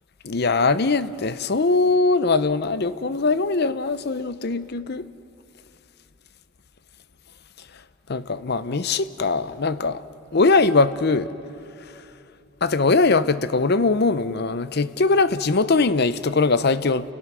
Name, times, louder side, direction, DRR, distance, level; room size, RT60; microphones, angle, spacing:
voice 1, 0.2-5.1 8.1-10.0 10.3-11.3 12.6-17.1, left 3 dB, 50° left, 0.7 m, -21 dB
30.0 x 28.5 x 6.2 m
head